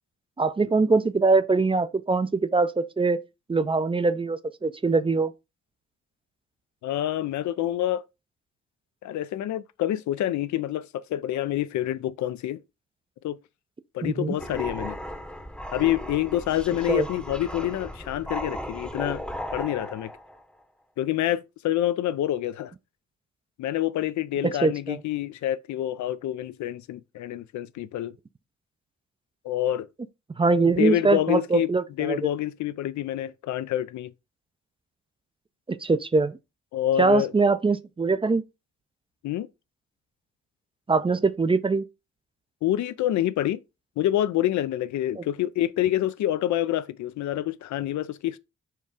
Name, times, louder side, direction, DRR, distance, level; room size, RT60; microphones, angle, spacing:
voice 1, 0.4-3.2 3.5-5.3 14.0-14.3 16.9-17.1 24.4-25.0 30.4-32.3 35.7-36.4 37.0-38.4 40.9-41.8 45.2-45.3, right 3 dB, 20° right, 0.4 m, -23 dB
voice 2, 6.8-8.0 9.0-12.6 13.2-13.4 13.9-15.0 15.7-19.2 19.5-20.1 21.0-22.7 23.6-28.1 29.4-29.9 30.8-31.7 32.0-34.1 36.7-37.3 39.2-39.5 42.6-43.6 44.0-48.4, left 13 dB, 75° left, 0.4 m, -27 dB
sound 1, 14.4-20.4, equal, 5° left, 0.8 m, -36 dB
4.6 x 2.4 x 4.7 m
supercardioid pair, 55°, 29 cm